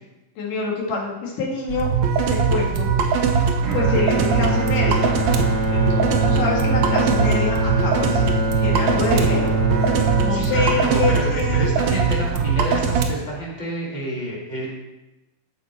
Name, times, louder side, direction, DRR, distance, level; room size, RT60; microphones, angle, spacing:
voice 1, 0.4-1.9 2.3-2.9 3.7-5.1 5.7-8.2 8.6-9.5 10.2-11.7, left 3 dB, 80° left, -2 dB, 3.5 m, -26 dB
sound 1, 1.7-13.1, right 5 dB, 70° right, 1.9 m, -21 dB
Bowed string instrument, 3.6-11.8, right 1 dB, 45° right, 1.8 m, -25 dB
voice 2, 10.3-14.7, equal, 40° left, -4 dB, 2.5 m, -29 dB
14.0 x 5.0 x 4.3 m, 1.0 s
omnidirectional pair, 3.7 m